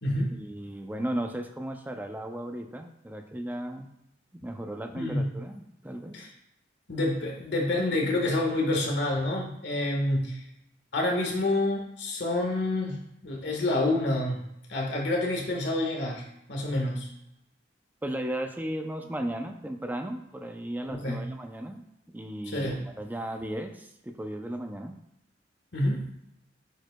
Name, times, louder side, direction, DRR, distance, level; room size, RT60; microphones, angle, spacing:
voice 1, 0.3-3.9 4.3-6.2 18.0-25.0, right 1 dB, 10° right, 5 dB, 0.5 m, -35 dB
voice 2, 4.9-5.3 6.1-6.3 6.9-10.4 10.9-14.4 14.7-17.1 20.9-21.2 22.5-22.8 25.7-26.0, left 2 dB, 70° left, -1 dB, 1.4 m, -28 dB
8.8 x 4.8 x 2.2 m, 0.81 s
head